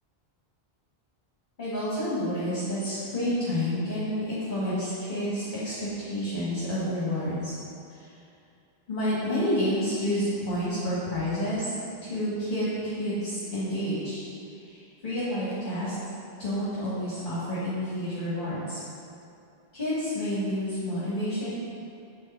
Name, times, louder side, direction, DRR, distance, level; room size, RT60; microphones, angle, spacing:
voice 1, 1.6-7.5 7.9-8.1 8.9-11.7 12.0-14.2 14.6-15.9 16.4-18.8 19.7-21.5, equal, 50° left, -11 dB, 1.8 m, -29 dB
7.4 x 4.8 x 4.4 m, 2.6 s
omnidirectional pair, 1.0 m